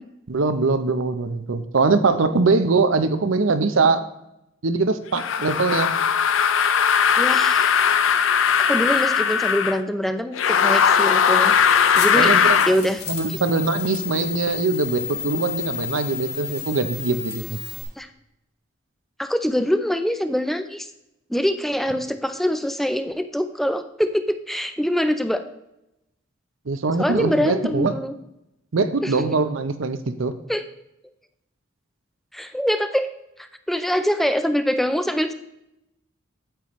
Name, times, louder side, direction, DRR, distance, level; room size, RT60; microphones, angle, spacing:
voice 1, 0.3-4.0 4.6-5.9 12.1-12.6 13.1-17.6 26.7-27.9 28.7-30.3, right 3 dB, 85° right, 10 dB, 0.7 m, -22 dB
sound 1, 5.2-9.8 10.3-12.8, left 7 dB, 80° left, 0.5 m, -19 dB
voice 2, 7.2-7.7 8.7-11.6 11.9-12.4 12.7-13.0 13.3-13.4 18.0-18.1 19.2-20.9 21.3-25.4 27.0-28.1 29.0-29.3 30.5-30.6 32.3-33.1 33.4-35.3, equal, ahead, 9 dB, 0.4 m, -24 dB
sound 2, 11.5-17.8, left 6 dB, 55° left, 1.2 m, -32 dB
9.1 x 8.6 x 3.1 m, 0.86 s
head